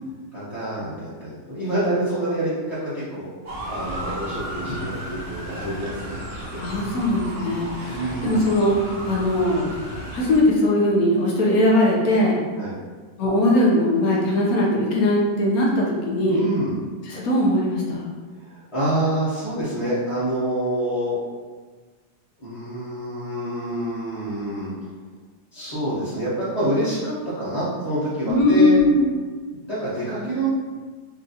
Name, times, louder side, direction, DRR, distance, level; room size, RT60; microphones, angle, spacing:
voice 1, 0.3-3.3 3.7-6.3 7.9-8.4 12.6-12.8 16.3-16.8 18.4-21.2 22.4-24.9 25.5-28.8 29.6-30.5, right 1 dB, 20° left, -13 dB, 0.9 m, -27 dB
Motor vehicle (road) / Siren, 3.5-10.4, equal, 55° right, 0.9 m, -34 dB
voice 2, 6.6-9.7 10.1-12.4 13.2-16.5 17.0-18.1 28.3-29.1, left 1 dB, 65° left, -3 dB, 1.0 m, -20 dB
5.3 x 2.4 x 2.8 m, 1.4 s
omnidirectional pair, 2.0 m